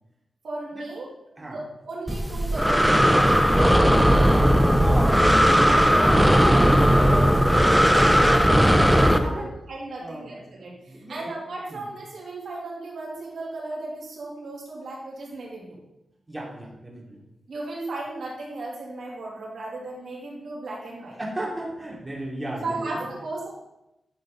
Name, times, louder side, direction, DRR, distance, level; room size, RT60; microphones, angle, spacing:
voice 1, 0.4-1.1 1.4-3.9 5.6-15.8 17.5-21.2 22.5-23.5, right 2 dB, 75° right, -4 dB, 3.0 m, -35 dB
Breathing, 2.1-9.2, equal, ahead, 0.7 m, -17 dB
voice 2, 4.8-5.7 9.2-9.5 10.0-10.3 10.9-11.3 11.7-11.8 16.3-17.2 21.1-23.1, right 1 dB, 20° right, -4 dB, 3.0 m, -34 dB
11.0 x 7.2 x 4.0 m, 0.89 s
wide cardioid pair, 125°, 0 cm